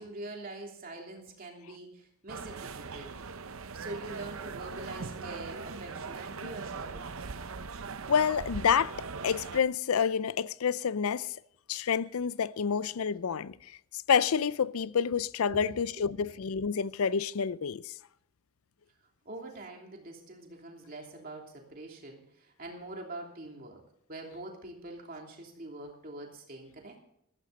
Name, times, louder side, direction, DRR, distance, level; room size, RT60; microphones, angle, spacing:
voice 1, 0.0-3.1 3.6-7.1 15.5-16.1 19.2-23.8 24.1-27.0, right 2 dB, 40° right, 3.0 m, -44 dB
sound 1, 2.3-9.6, right 4 dB, 65° right, 0.7 m, -40 dB
voice 2, 8.1-11.3 11.7-13.5 14.1-17.9, left 6 dB, 70° left, 0.5 m, -28 dB
14.5 x 14.5 x 4.1 m
head